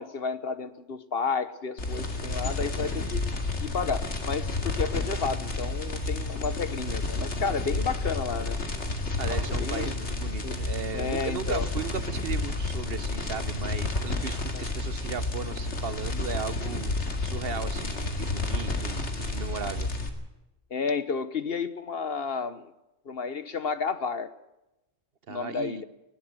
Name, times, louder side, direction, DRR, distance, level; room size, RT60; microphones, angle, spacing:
voice 1, 0.0-3.2 3.6-8.6 9.3-9.9 10.4-10.6 10.9-11.7 14.5-14.6 20.7-22.7 23.0-24.3 25.3-25.8, left 5 dB, 55° left, 13 dB, 1.3 m, -31 dB
sound 1, 1.8-20.1, left 2 dB, 70° left, 2.7 m, -31 dB
voice 2, 9.2-19.9 25.3-25.8, right 6 dB, 55° right, 15 dB, 1.0 m, -36 dB
20.0 x 17.0 x 7.8 m, 0.95 s
omnidirectional pair, 1.2 m